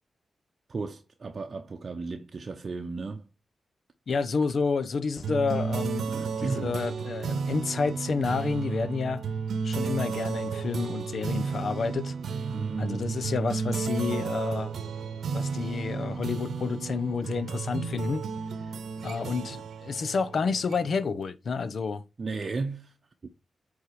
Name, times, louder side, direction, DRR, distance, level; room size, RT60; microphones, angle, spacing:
voice 1, 0.7-3.2 6.0-6.8 12.5-13.2 22.2-22.9 23.2-23.3, right 4 dB, 50° right, 0.7 m, -34 dB
voice 2, 4.1-6.1 6.4-9.2 9.6-12.1 12.8-14.7 15.3-18.3 19.0-22.0, left 5 dB, 65° left, 0.7 m, -29 dB
sound 1, 5.2-21.1, right 5 dB, 80° right, 0.8 m, -33 dB
8.1 x 3.6 x 4.6 m
cardioid pair, 65°, 0 cm